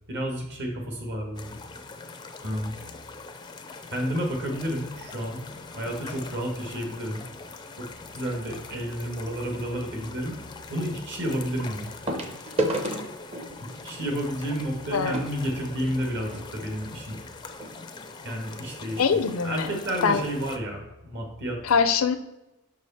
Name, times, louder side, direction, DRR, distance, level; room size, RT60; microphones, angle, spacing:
voice 1, 0.1-1.6 2.4-2.7 3.9-5.5 5.7-7.2 7.8-7.9 8.1-10.4 10.7-11.9 13.7-17.2 18.2-19.0 19.4-21.6, equal, 55° right, 2 dB, 1.5 m, -31 dB
sound 1, 1.3-20.6, left 3 dB, 20° left, 0.4 m, -43 dB
sound 2, 10.4-10.5 12.1-16.5 17.2-17.3 17.5-17.7 18.3-18.4, right 1 dB, 30° right, 0.8 m, -33 dB
voice 2, 19.0-19.8 20.0-20.2 21.6-22.2, left 6 dB, 70° left, 10 dB, 0.5 m, -23 dB
5.8 x 4.7 x 4.3 m, 0.98 s
head